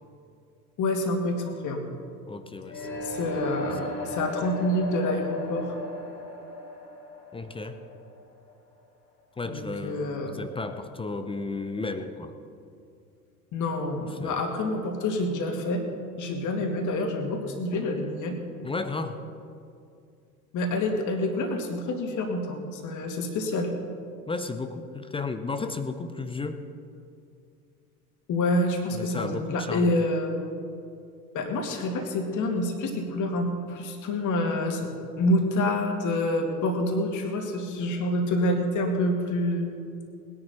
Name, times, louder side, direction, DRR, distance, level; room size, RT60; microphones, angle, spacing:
voice 1, 0.8-1.8 3.0-5.8 9.5-10.4 13.5-15.8 16.2-18.4 20.5-23.7 28.3-30.3 31.3-39.7, left 1 dB, 40° left, 3 dB, 2.3 m, -27 dB
voice 2, 2.3-2.9 3.8-4.0 7.3-7.8 9.4-12.3 14.0-14.4 18.6-19.2 24.3-26.6 28.9-29.9, left 3 dB, 10° left, 9 dB, 0.6 m, -34 dB
sound 1, 2.6-8.6, left 2 dB, 75° left, 2.9 m, -36 dB
20.0 x 10.5 x 4.3 m, 2.5 s
figure-of-eight pair, 75°, 47 cm